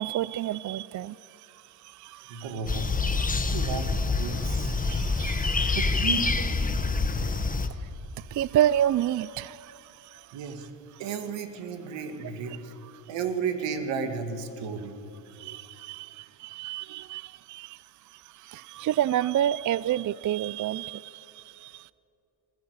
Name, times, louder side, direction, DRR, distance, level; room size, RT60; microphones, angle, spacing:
voice 1, 0.0-2.5 3.3-3.5 4.5-5.8 7.7-7.9 8.2-10.4 15.3-21.9, right 11 dB, 45° right, 19 dB, 0.4 m, -30 dB
voice 2, 2.3-2.9 3.3-3.9 4.2-4.7 5.6-6.4 10.3-10.7 11.0-12.8 13.1-15.0, right 6 dB, 85° right, 7 dB, 2.3 m, -33 dB
sound 1, 2.7-7.7, left 3 dB, 20° left, 1.3 m, -26 dB
27.0 x 15.0 x 8.1 m, 2.6 s
cardioid pair, 85°, 43 cm